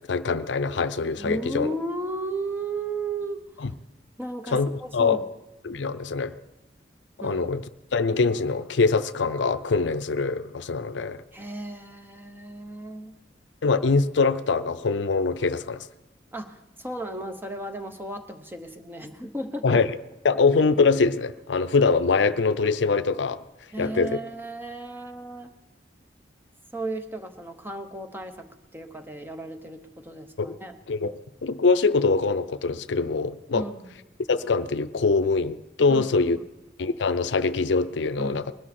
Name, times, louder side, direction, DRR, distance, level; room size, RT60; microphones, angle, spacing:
voice 1, 0.1-1.7 3.6-3.7 4.5-5.2 5.6-6.3 7.2-7.6 7.9-11.2 13.6-15.9 19.6-19.9 20.2-23.4 23.8-24.2 30.4-30.5 30.9-31.1 31.4-33.6 34.3-36.4 36.8-38.5, left 4 dB, 90° left, 14 dB, 0.5 m, -23 dB
voice 2, 1.2-3.7 4.2-5.2 7.2-7.4 11.3-13.1 16.3-19.8 23.7-25.5 26.7-30.8 33.5-34.0 35.9-36.1 36.3-36.4 38.2-38.5, right 2 dB, 10° right, 7 dB, 0.9 m, -34 dB
20.5 x 12.5 x 4.3 m, 0.98 s
head